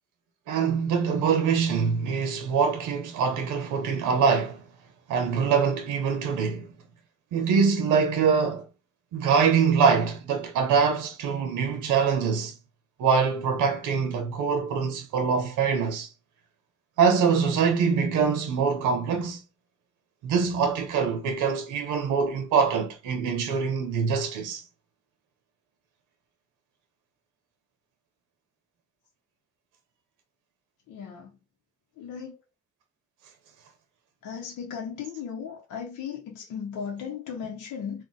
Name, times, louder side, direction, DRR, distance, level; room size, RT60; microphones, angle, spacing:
voice 1, 0.5-4.7 5.1-6.7 7.3-8.7 9.1-12.6 13.0-16.1 17.0-19.4 20.2-24.6, right 6 dB, 90° right, 0.7 m, -24 dB
voice 2, 30.9-31.3 32.0-32.4 34.2-38.0, left 7 dB, 75° left, 0.8 m, -36 dB
2.4 x 2.2 x 3.8 m
cardioid pair, 90°, 30 cm